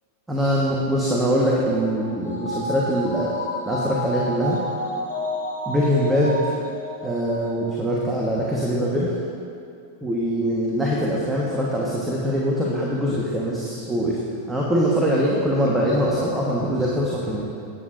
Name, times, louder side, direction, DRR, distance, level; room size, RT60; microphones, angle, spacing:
voice 1, 0.3-3.3 3.6-4.6 5.7-6.5 7.0-9.1 10.0-14.2 14.5-17.4, equal, 10° right, -4 dB, 1.4 m, -23 dB
sound 1, 1.2-7.9 8.2-8.3, left 1 dB, 85° left, 1.9 m, -31 dB
18.0 x 8.5 x 2.6 m, 2.5 s
figure-of-eight pair, 90°, 0 cm